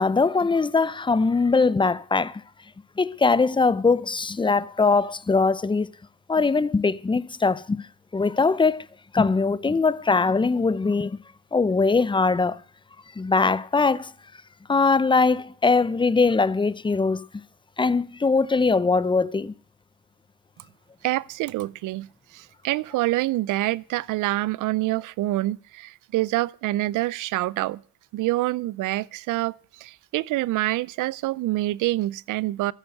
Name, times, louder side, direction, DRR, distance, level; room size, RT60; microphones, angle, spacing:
voice 1, 0.0-2.4 3.0-5.9 6.3-7.9 8.1-8.9 9.1-11.2 11.5-12.6 13.2-14.1 14.7-17.4 17.8-19.5, left 4 dB, 15° left, 0.7 m, -21 dB
voice 2, 21.0-27.8 28.1-32.7, right 17 dB, 85° right, 0.6 m, -26 dB
13.5 x 10.0 x 7.9 m
cardioid pair, 90°, 30 cm